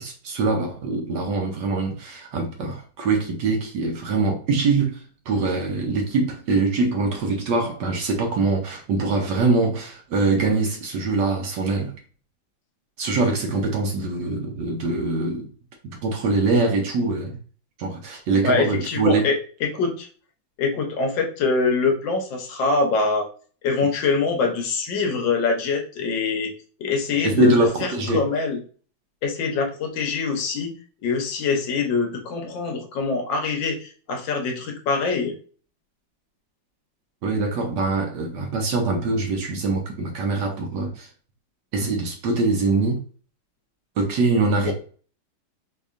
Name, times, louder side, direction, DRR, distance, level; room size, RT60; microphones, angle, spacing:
voice 1, 0.0-11.9 13.0-15.5 16.0-17.4 17.8-19.3 27.2-28.2 37.2-41.1 41.7-43.0 44.0-44.7, right 3 dB, 70° right, 1.1 m, -23 dB
voice 2, 18.4-19.3 19.6-20.1 20.6-23.3 23.6-26.5 26.8-27.5 27.8-28.6 29.2-30.7 31.0-35.3 44.6-44.7, left 4 dB, 70° left, 1.3 m, -24 dB
4.3 x 2.8 x 2.4 m
omnidirectional pair, 2.2 m